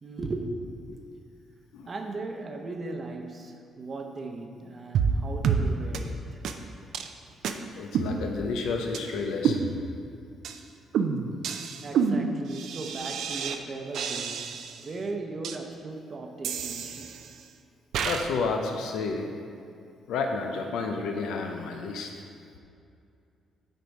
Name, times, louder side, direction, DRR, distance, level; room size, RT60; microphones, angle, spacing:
voice 1, 0.0-1.1 1.8-6.4 11.8-17.2, right 3 dB, 40° right, 3 dB, 0.7 m, -37 dB
sound 1, 4.9-5.2 5.4-5.6 5.9-6.0 6.4-6.5 6.9-7.1 7.4-7.5 7.9-8.6 8.9-9.0 9.4-10.1 10.4-10.6 10.9-13.6 13.9-14.9 15.4-15.6 16.4-17.4 17.9-18.3, right 6 dB, 75° right, 0.5 m, -28 dB
voice 2, 7.7-9.6 18.0-19.3 20.1-22.1, left 4 dB, 85° left, 3 dB, 0.6 m, -30 dB
7.9 x 4.5 x 5.3 m, 2.5 s
cardioid pair, 90°, 0 cm